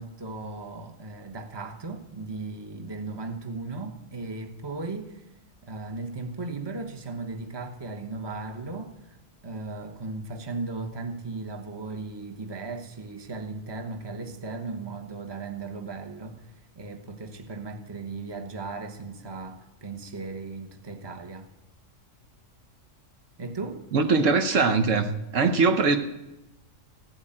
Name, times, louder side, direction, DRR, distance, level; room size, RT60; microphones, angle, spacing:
voice 1, 0.0-5.2 5.6-9.2 9.4-21.5 23.4-23.8, right 3 dB, 20° right, 1.1 m, -36 dB
voice 2, 23.9-25.1 25.3-26.0, right 4 dB, 70° right, 1.3 m, -21 dB
15.5 x 8.0 x 8.9 m
omnidirectional pair, 1.4 m